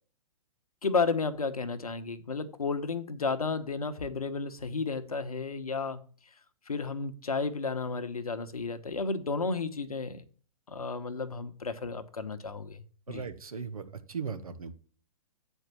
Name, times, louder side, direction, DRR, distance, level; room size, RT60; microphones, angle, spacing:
voice 1, 0.8-6.0 6.7-10.2 10.7-13.2, left 4 dB, 80° left, 1.0 m, -32 dB
voice 2, 13.1-14.7, right 5 dB, 75° right, 1.1 m, -38 dB
8.1 x 4.5 x 6.9 m
figure-of-eight pair, 115°, 19 cm